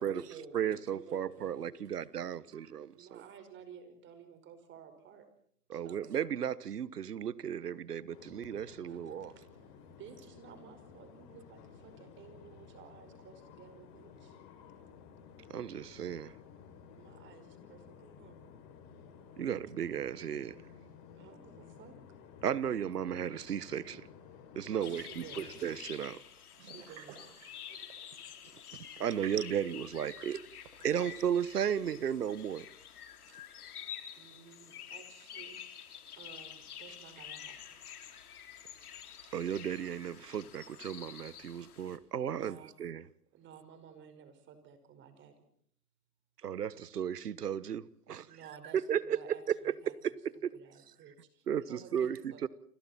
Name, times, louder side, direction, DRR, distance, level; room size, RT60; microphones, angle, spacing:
voice 1, 0.0-1.7 2.5-2.7 26.6-27.9 28.7-28.8 29.2-29.3 30.2-30.3, right 5 dB, 55° right, 6.0 m, -50 dB
voice 2, 0.5-2.9 5.7-9.3 15.5-16.3 19.4-20.6 22.4-24.1 24.5-26.2 28.7-30.4 30.8-32.6 39.3-43.0 46.4-48.3 48.9-49.3 49.9-50.1 50.4-50.5 51.5-52.2 52.4-52.5, right 9 dB, 90° right, 1.3 m, -35 dB
voice 3, 2.9-5.3 5.7-6.1 8.9-9.5 9.8-14.4 17.0-18.5 21.2-22.0 24.6-25.5 26.6-27.2 33.3-33.4 34.2-35.8 36.2-37.8 42.2-42.7 43.3-45.5 48.2-50.1 50.5-52.5, right 7 dB, 25° right, 5.2 m, -54 dB
sound 1, 8.1-25.8, left 7 dB, 40° left, 6.6 m, -54 dB
sound 2, 24.8-42.0, left 9 dB, 70° left, 3.9 m, -49 dB
30.0 x 24.5 x 4.3 m
hypercardioid pair, 135°, 46 cm